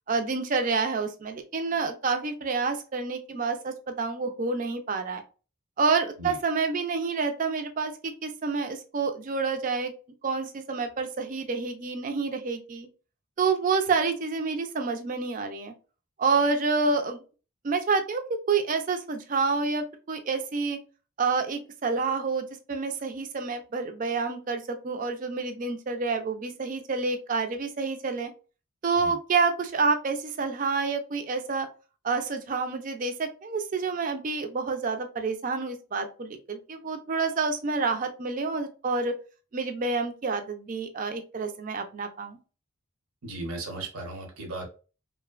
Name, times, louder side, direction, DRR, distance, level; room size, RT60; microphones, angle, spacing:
voice 1, 0.1-5.2 5.8-9.9 10.2-12.9 13.4-15.7 16.2-17.2 17.6-20.8 21.2-28.3 28.8-31.7 32.0-39.2 39.5-42.4, right 4 dB, 35° right, 6 dB, 0.3 m, -28 dB
voice 2, 43.2-44.7, right 2 dB, 85° right, 1 dB, 0.8 m, -36 dB
3.0 x 2.0 x 2.3 m, 0.35 s
head